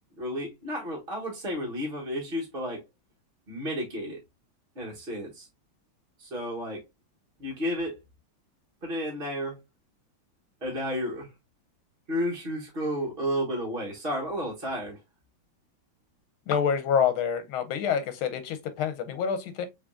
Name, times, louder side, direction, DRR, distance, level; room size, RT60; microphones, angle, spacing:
voice 1, 0.2-2.8 3.5-4.2 4.7-5.5 6.2-6.8 7.4-8.0 8.8-9.6 10.6-11.3 12.1-15.0, equal, 35° right, 1.2 m, -32 dB
voice 2, 16.5-19.7, left 7 dB, 85° left, 1.7 m, -27 dB
5.9 x 3.2 x 2.5 m
omnidirectional pair, 2.2 m